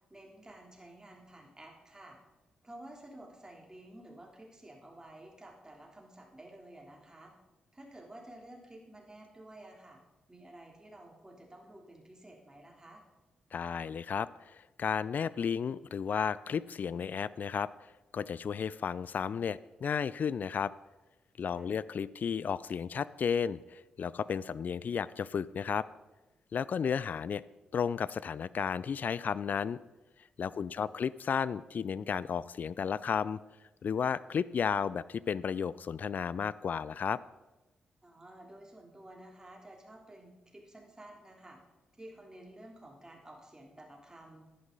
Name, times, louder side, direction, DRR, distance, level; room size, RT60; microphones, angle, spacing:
voice 1, 0.1-2.2 2.6-7.4 7.7-10.0 10.3-13.0 21.5-21.7 30.5-30.9 38.0-41.6 42.0-44.5, right 1 dB, 20° right, 0 dB, 3.2 m, -52 dB
voice 2, 13.5-17.7 18.1-20.7 21.4-25.9 26.5-27.4 27.7-29.8 30.4-33.4 33.8-37.2, left 7 dB, 60° left, 19 dB, 0.4 m, -33 dB
11.0 x 10.5 x 4.0 m, 1.1 s
hypercardioid pair, 40°, 3 cm